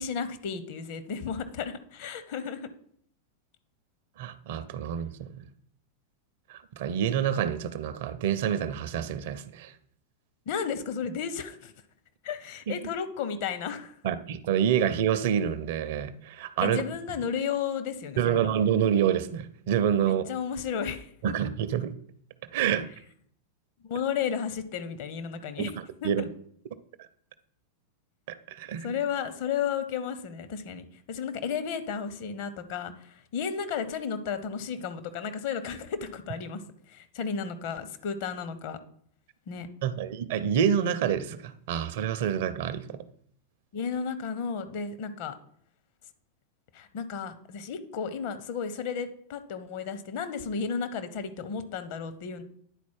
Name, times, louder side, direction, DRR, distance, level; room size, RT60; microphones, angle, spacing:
voice 1, 0.0-2.7 10.5-11.7 12.2-14.0 16.6-18.5 20.1-21.1 23.8-25.7 26.0-26.3 28.8-38.8 39.5-39.7 43.7-45.4 46.7-52.4, left 6 dB, 50° left, 10 dB, 0.7 m, -33 dB
voice 2, 4.2-5.4 6.5-9.7 12.7-12.8 14.0-16.8 18.2-20.3 21.2-21.9 22.5-22.9 25.6-25.7 26.0-26.2 27.0-27.1 28.3-28.9 39.8-43.0, right 9 dB, 55° right, 13 dB, 0.5 m, -27 dB
9.9 x 4.1 x 4.6 m, 0.63 s
figure-of-eight pair, 90°, 0 cm